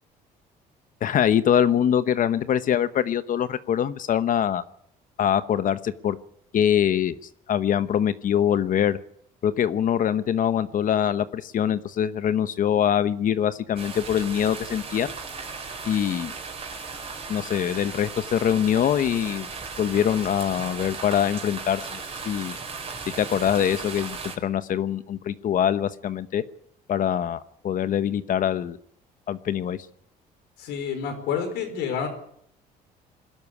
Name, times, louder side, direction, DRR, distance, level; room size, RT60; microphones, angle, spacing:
voice 1, 1.0-4.6 5.2-6.2 6.5-7.2 7.5-9.0 9.4-15.1 15.8-16.3 17.3-19.5 19.8-22.6 23.2-26.4 26.9-28.8 29.3-29.8, left 9 dB, 50° left, 13 dB, 1.0 m, -23 dB
sound 1, 13.8-24.4, right 4 dB, 35° right, 4.3 m, -36 dB
voice 2, 30.6-32.1, left 7 dB, 90° left, 7 dB, 4.8 m, -28 dB
22.0 x 12.5 x 9.8 m, 0.69 s
cardioid pair, 110°, 17 cm